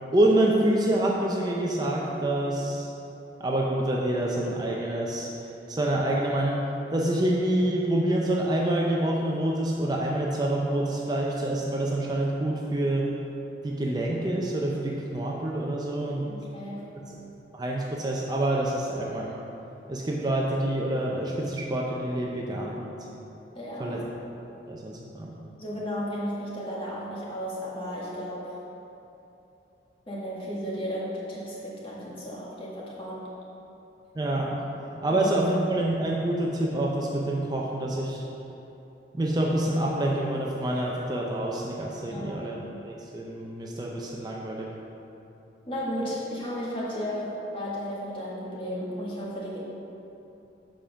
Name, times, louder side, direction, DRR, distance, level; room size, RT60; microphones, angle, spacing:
voice 1, 0.1-2.9 3.4-5.3 5.7-6.6 6.9-13.1 13.6-16.3 17.5-19.4 19.9-23.0 23.8-24.0 24.7-25.3 34.2-34.6 35.0-38.2 39.1-42.5 42.8-44.7, right 1 dB, 20° right, -2 dB, 0.5 m, -27 dB
voice 2, 16.3-17.0 23.5-24.0 25.3-28.5 30.1-33.3 35.1-35.3 42.1-42.4 45.7-49.6, equal, 30° left, -6 dB, 1.7 m, -34 dB
7.4 x 5.1 x 5.8 m, 3.0 s
head